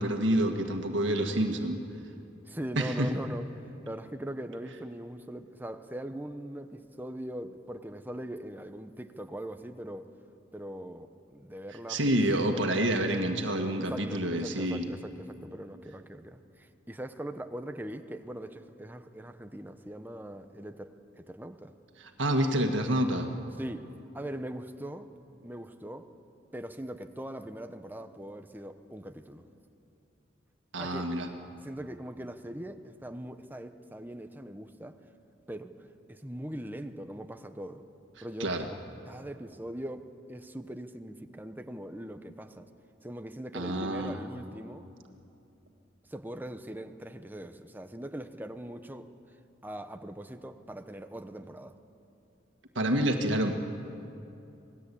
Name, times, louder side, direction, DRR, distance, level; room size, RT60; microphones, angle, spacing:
voice 1, 0.0-1.8 2.8-3.1 11.9-14.9 22.0-23.3 30.7-31.3 38.4-38.7 43.5-44.2 52.8-53.5, right 1 dB, 75° right, 4 dB, 1.8 m, -28 dB
voice 2, 2.5-10.1 10.5-12.2 13.8-21.7 23.6-23.9 24.1-25.1 25.4-26.1 26.5-29.4 30.8-31.1 31.6-35.0 35.5-35.7 36.1-37.8 38.2-38.5 39.0-42.7 43.0-44.9 46.1-49.1 49.6-51.7, right 1 dB, 10° right, 8 dB, 0.9 m, -41 dB
27.0 x 19.5 x 8.5 m, 2.7 s
head